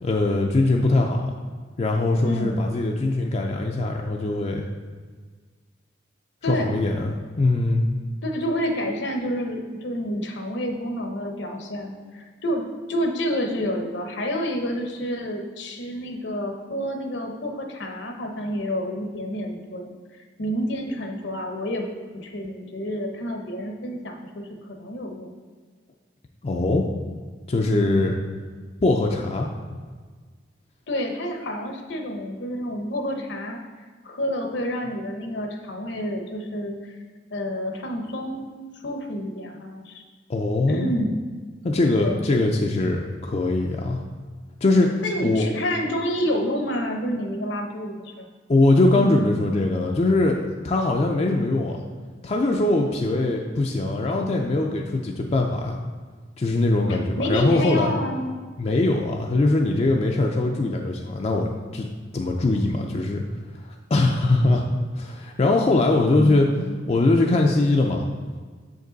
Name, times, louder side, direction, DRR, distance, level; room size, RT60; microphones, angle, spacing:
voice 1, 0.0-1.3 1.8-4.6 6.5-7.8 26.4-26.9 27.5-28.1 28.8-29.8 40.3-40.9 41.6-44.0 44.6-45.5 48.5-51.8 52.2-55.8 56.4-57.9 58.6-61.9 62.1-63.2 63.9-64.7 64.9-66.5 66.9-68.1, left 2 dB, 35° left, 1 dB, 0.4 m, -21 dB
voice 2, 2.2-2.6 6.4-6.7 8.2-12.6 12.9-19.9 20.4-21.9 22.1-24.5 24.8-25.3 27.9-28.3 30.9-33.6 34.0-36.9 37.3-38.5 38.8-40.0 40.7-41.1 42.0-42.2 45.0-48.3 48.8-49.2 56.9-58.3 66.2-66.8, equal, 65° left, 4 dB, 0.9 m, -29 dB
7.0 x 5.2 x 3.9 m, 1.5 s
head